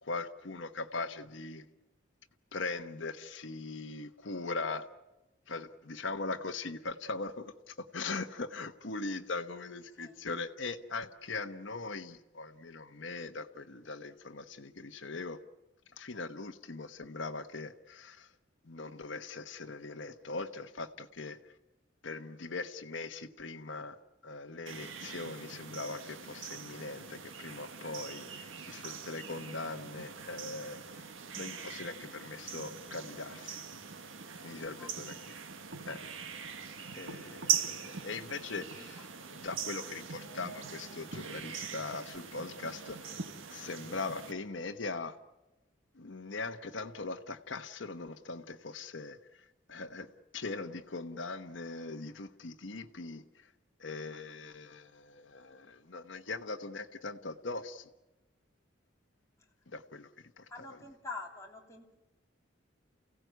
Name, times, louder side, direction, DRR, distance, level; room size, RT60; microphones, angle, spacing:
voice 1, 0.0-1.6 2.5-4.9 5.5-15.4 16.0-18.3 18.6-21.4 22.0-23.9 24.2-30.8 31.3-33.6 34.4-35.3 35.8-36.0 36.9-43.2 43.5-45.2 45.9-49.2 49.7-53.2 53.8-57.9 59.7-60.1 60.4-60.8, left 3 dB, 70° left, 6 dB, 1.1 m, -40 dB
sound 1, 24.7-44.3, right 7 dB, 90° right, 1.6 m, -41 dB
voice 2, 34.6-34.9 38.7-38.8 60.5-61.9, left 3 dB, 15° left, 0 dB, 2.9 m, -45 dB
29.5 x 16.5 x 9.3 m, 1.0 s
head